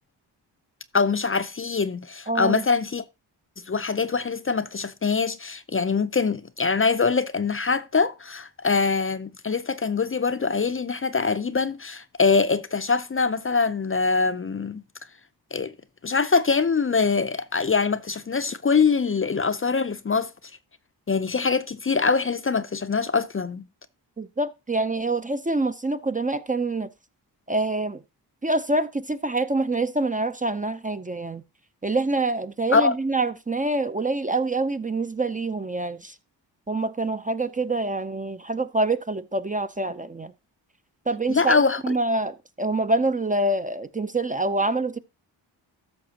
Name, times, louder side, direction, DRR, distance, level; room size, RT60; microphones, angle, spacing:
voice 1, 0.9-3.0 3.7-14.8 15.5-15.7 16.0-20.3 21.1-23.6 32.7-32.9 41.3-41.8, left 4 dB, 30° left, 0.6 m, -23 dB
voice 2, 2.3-2.6 24.2-26.9 27.5-28.0 28.4-31.4 31.8-36.1 36.7-40.3 41.1-45.0, right 2 dB, 20° right, 0.6 m, -26 dB
13.5 x 6.1 x 2.8 m
cardioid pair, 70°, 43 cm